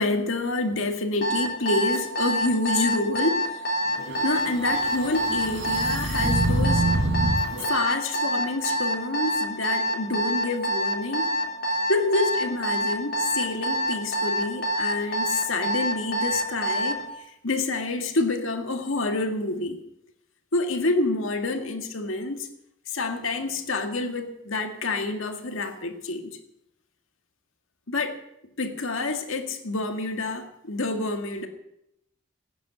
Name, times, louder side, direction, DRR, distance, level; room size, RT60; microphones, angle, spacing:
voice 1, 0.0-3.7 4.2-6.9 7.6-11.3 11.9-19.8 20.5-22.5 22.9-26.4 27.9-28.2 28.6-31.5, left 2 dB, 85° left, 5 dB, 2.0 m, -28 dB
Alarm, 1.2-17.0, right 1 dB, 45° left, 3.2 m, -26 dB
sound 1, 3.9-7.7, right 1 dB, 60° right, 4.0 m, -26 dB
17.0 x 9.7 x 7.9 m, 0.80 s
head